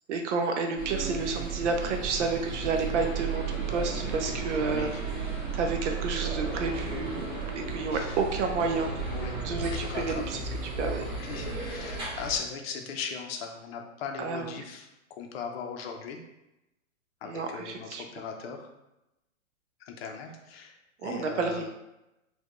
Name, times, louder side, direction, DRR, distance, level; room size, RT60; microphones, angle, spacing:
voice 1, 0.1-4.9 5.5-8.9 9.4-10.4 10.8-11.1 14.2-14.6 17.2-18.0 21.0-21.7, right 4 dB, 60° right, 3 dB, 0.6 m, -30 dB
sound 1, 0.8-12.4, right 4 dB, 10° right, 1.3 m, -34 dB
voice 2, 4.6-5.0 7.9-8.2 9.1-9.3 9.7-10.4 11.0-16.2 17.2-18.7 19.8-20.8 21.0-21.7, left 6 dB, 50° left, 3 dB, 0.6 m, -38 dB
4.3 x 2.3 x 2.9 m, 0.92 s
hypercardioid pair, 130°, 41 cm